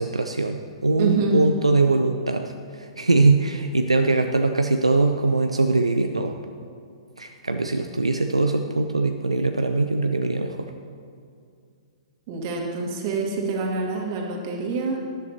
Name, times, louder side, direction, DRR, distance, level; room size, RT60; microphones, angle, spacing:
voice 1, 0.0-6.3 7.2-10.7, right 3 dB, 85° right, 6 dB, 0.5 m, -22 dB
voice 2, 1.0-1.4 12.3-15.0, right 3 dB, 40° right, 0 dB, 2.3 m, -26 dB
18.5 x 11.0 x 2.9 m, 2.3 s
figure-of-eight pair, 115°, 3 cm